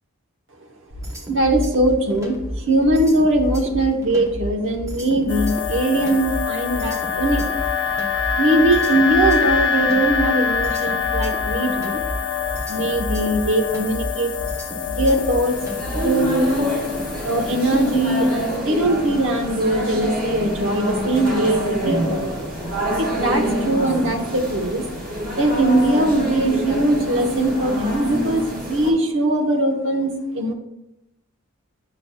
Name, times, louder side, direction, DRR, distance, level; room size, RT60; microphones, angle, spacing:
sound 1, 0.9-16.2, equal, 15° right, 0.8 m, -31 dB
voice 1, 1.2-7.4 8.4-12.0 12.7-14.3 14.8-15.6 16.0-16.5 17.2-22.2 23.0-24.8 25.4-30.5, right 1 dB, 60° right, 3 dB, 0.9 m, -21 dB
sound 2, 5.3-18.6, left 7 dB, 55° left, 0.7 m, -25 dB
sound 3, 14.9-28.9, equal, 40° right, 1.4 m, -26 dB
8.3 x 5.9 x 2.2 m, 0.86 s
head